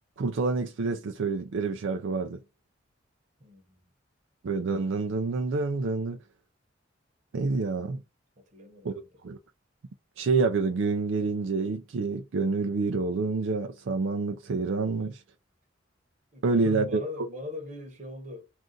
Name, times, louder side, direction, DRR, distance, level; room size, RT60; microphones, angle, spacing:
voice 1, 0.2-2.4 4.4-6.2 7.3-8.0 8.8-8.9 9.2-9.4 10.2-15.2 16.4-17.0, right 4 dB, 75° right, 0.4 m, -27 dB
voice 2, 3.4-3.9 7.8-7.9 8.4-9.1 16.3-18.5, left 2 dB, 40° right, 0.9 m, -41 dB
2.5 x 2.4 x 3.7 m
head